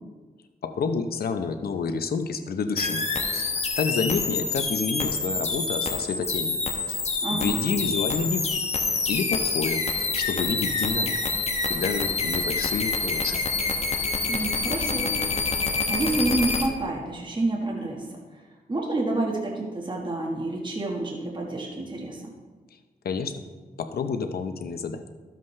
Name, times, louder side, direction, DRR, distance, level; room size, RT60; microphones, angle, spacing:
voice 1, 0.6-3.0 3.3-6.6 6.9-7.0 7.3-8.6 9.1-11.4 11.7-13.6 23.0-23.4 23.8-25.0, left 5 dB, 80° left, 8 dB, 0.7 m, -29 dB
sound 1, 2.8-16.7, left 4 dB, 45° left, 1.0 m, -27 dB
voice 2, 7.2-7.6 14.3-15.2 15.9-18.2 18.7-22.2, right 2 dB, 30° right, -1 dB, 1.5 m, -28 dB
12.0 x 7.5 x 3.2 m, 1.3 s
cardioid pair, 75°, 16 cm